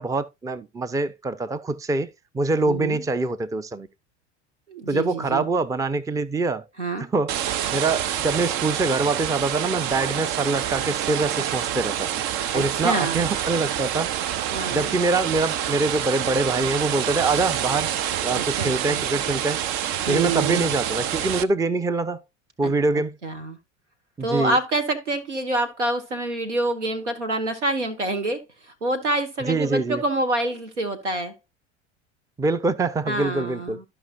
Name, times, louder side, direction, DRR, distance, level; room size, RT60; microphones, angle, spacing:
voice 1, 0.0-3.9 4.9-6.7 7.1-7.4 7.7-12.2 12.5-14.1 14.7-17.9 18.2-19.6 20.1-22.2 22.6-23.2 24.2-24.6 29.4-30.0 32.4-33.8, right 3 dB, 10° right, 0.6 m, -24 dB
voice 2, 2.6-3.0 4.7-5.5 6.8-7.1 12.5-13.3 14.5-15.0 18.3-19.0 20.0-20.7 22.6-22.7 23.2-23.6 24.2-28.4 28.8-31.3 33.1-33.8, right 2 dB, 85° right, 1.6 m, -27 dB
sound 1, 7.3-21.4, right 10 dB, 50° right, 0.7 m, -27 dB
12.5 x 5.4 x 2.5 m
figure-of-eight pair, 70°, 35 cm